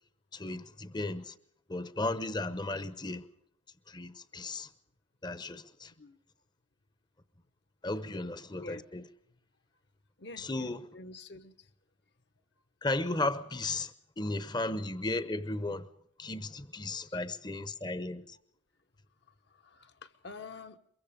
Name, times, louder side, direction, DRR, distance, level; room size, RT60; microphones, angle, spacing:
voice 1, 0.3-1.4 1.7-3.3 3.9-4.7 5.2-5.9 7.8-9.0 10.4-10.8 12.8-15.9 16.2-18.4, left 2 dB, 20° left, 0.9 m, -35 dB
voice 2, 8.6-8.9 10.2-11.7 17.0-17.2 19.3-20.8, left 3 dB, 55° left, 1.2 m, -49 dB
23.5 x 23.0 x 5.1 m
head